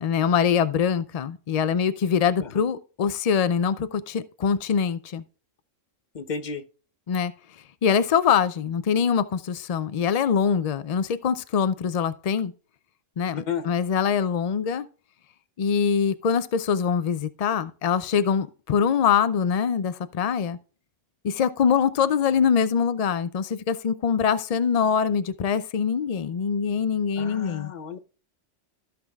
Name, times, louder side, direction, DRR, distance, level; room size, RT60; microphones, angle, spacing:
voice 1, 0.0-5.2 7.1-7.3 7.8-12.5 13.2-14.9 15.6-20.6 21.2-27.7, left 7 dB, 75° left, 0.3 m, -23 dB
voice 2, 6.1-6.6 13.4-13.7 27.2-28.0, left 6 dB, 45° left, 0.8 m, -32 dB
15.0 x 6.0 x 2.3 m
omnidirectional pair, 1.3 m